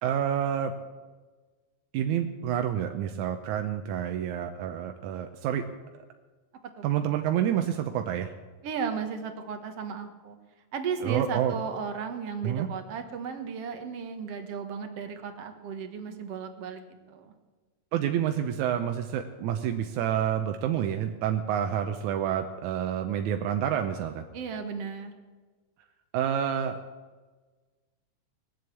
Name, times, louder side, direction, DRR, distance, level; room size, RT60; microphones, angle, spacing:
voice 1, 0.0-0.7 1.9-5.6 6.8-8.3 11.0-11.6 12.4-12.7 17.9-24.2 26.1-26.8, right 9 dB, 90° right, 5 dB, 2.2 m, -28 dB
voice 2, 8.6-10.4 10.7-17.3 24.3-25.1, right 6 dB, 60° right, 6 dB, 2.2 m, -35 dB
20.5 x 7.8 x 8.3 m, 1.3 s
omnidirectional pair, 3.4 m